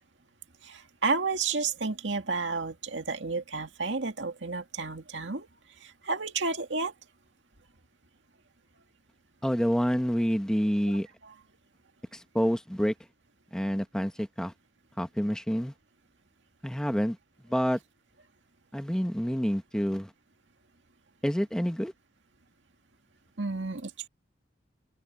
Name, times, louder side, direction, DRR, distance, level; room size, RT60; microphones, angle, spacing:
voice 1, 0.6-5.5 5.8-6.9 10.9-11.3 23.4-24.1, right 4 dB, 80° right, 2.2 m, -31 dB
voice 2, 9.4-11.1 12.1-12.9 13.5-14.5 15.0-15.7 16.6-17.2 17.5-17.8 18.7-20.1 21.2-21.9, equal, 5° left, 1.2 m, -28 dB
open air
head